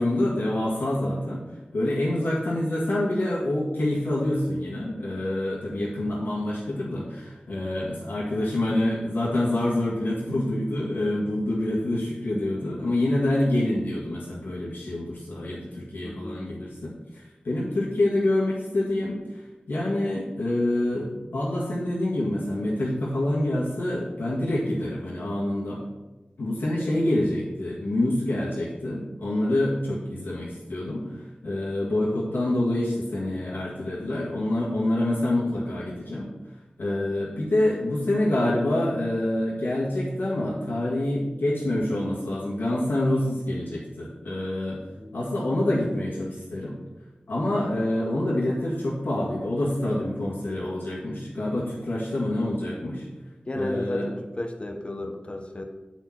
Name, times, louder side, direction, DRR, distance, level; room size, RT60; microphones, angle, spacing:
voice 1, 0.0-1.4 1.7-19.2 19.7-25.8 26.4-31.0 31.4-36.3 36.8-44.8 45.1-46.7 47.3-53.0 53.5-54.1, left 1 dB, 90° left, -6 dB, 1.7 m, -26 dB
voice 2, 16.0-16.4 45.0-45.2 53.5-55.7, left 1 dB, 35° left, 4 dB, 0.9 m, -33 dB
8.0 x 4.5 x 5.9 m, 1.1 s
wide cardioid pair, 55°, 3 cm